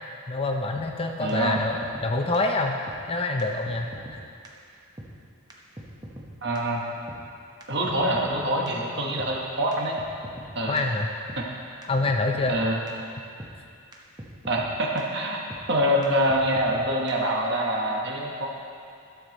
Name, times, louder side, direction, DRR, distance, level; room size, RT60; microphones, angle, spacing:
voice 1, 0.3-1.8 2.0-2.8 3.1-4.2 10.7-11.1 11.9-12.6, left 2 dB, 25° left, 2 dB, 0.5 m, -26 dB
sound 1, 0.8-0.9 1.3-1.4 1.6-2.1 2.3-2.4 2.9-3.0 3.4-3.5 3.7-4.2 4.4-4.5 5.0-5.1 5.5-5.6 5.8-6.3 6.6-6.7 7.1-7.2 7.6-8.4 8.7-8.8 9.2-9.3 9.7-9.8 10.0-10.5 10.8-10.9 11.3-11.4 11.8-11.9 12.1-12.6 12.9-13.0 13.4-13.5 13.9-14.0 14.2-14.7 15.0-15.1 15.5-15.6 16.0-16.1 16.3-16.8 17.1-17.2, equal, 20° right, 0.9 m, -41 dB
voice 2, 1.2-1.6 6.4-6.8 7.7-10.0 10.5-10.8 11.4-11.5 12.5-12.8 14.5-15.4 15.7-18.5, right 1 dB, 50° right, -1 dB, 1.2 m, -25 dB
12.5 x 7.1 x 4.0 m, 2.5 s
head